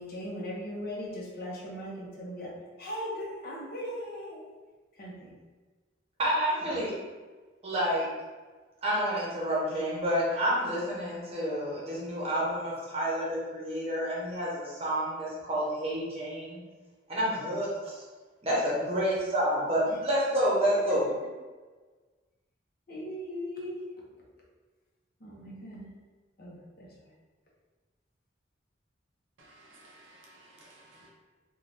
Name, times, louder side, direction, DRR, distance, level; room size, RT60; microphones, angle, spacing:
voice 1, 0.0-2.5 2.8-4.4 5.0-5.3 6.6-6.8 19.9-20.0 22.9-23.8 25.2-25.9 26.4-26.9, equal, 55° left, -4 dB, 0.7 m, -38 dB
voice 2, 6.2-6.9 7.6-8.1 8.8-16.6 17.1-18.0 18.4-21.1, equal, 35° right, -6 dB, 0.9 m, -29 dB
voice 3, 29.4-31.1, right 1 dB, 85° right, -2 dB, 0.7 m, -56 dB
2.6 x 2.3 x 3.2 m, 1.3 s
head